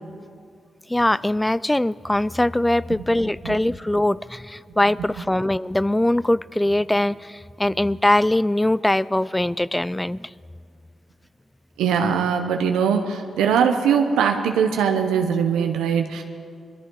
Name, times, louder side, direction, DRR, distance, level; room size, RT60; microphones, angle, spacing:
voice 1, 0.9-10.3, left 1 dB, 15° left, 21 dB, 0.3 m, -22 dB
voice 2, 11.8-16.2, right 7 dB, 85° right, 4 dB, 0.8 m, -21 dB
21.5 x 13.5 x 3.9 m, 2.2 s
supercardioid pair, 45°, 0 cm